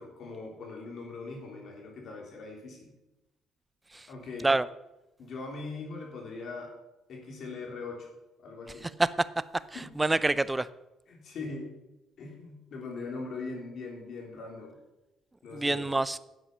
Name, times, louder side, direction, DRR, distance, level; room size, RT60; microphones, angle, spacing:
voice 1, 0.0-2.9 4.1-4.5 5.2-6.8 7.1-8.1 8.4-8.9 9.7-10.0 11.1-11.8 12.2-14.8 15.4-15.9, left 3 dB, 60° left, 0 dB, 3.6 m, -41 dB
voice 2, 10.0-10.7 15.5-16.2, right 2 dB, 15° right, 16 dB, 0.5 m, -26 dB
11.0 x 7.8 x 5.6 m, 0.97 s
cardioid pair, 85°, 0 cm